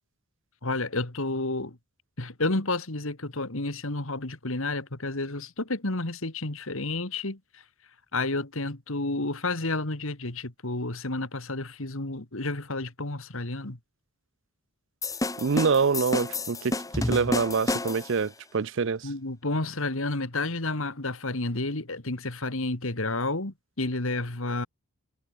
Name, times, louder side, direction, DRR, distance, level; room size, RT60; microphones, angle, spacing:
voice 1, 0.6-1.8 2.2-7.6 8.1-13.8 19.0-24.7, left 2 dB, 65° left, 2.3 m, -31 dB
sound 1, 15.0-18.2, left 2 dB, 15° left, 1.2 m, -30 dB
voice 2, 15.4-19.1, right 5 dB, 55° right, 0.5 m, -26 dB
head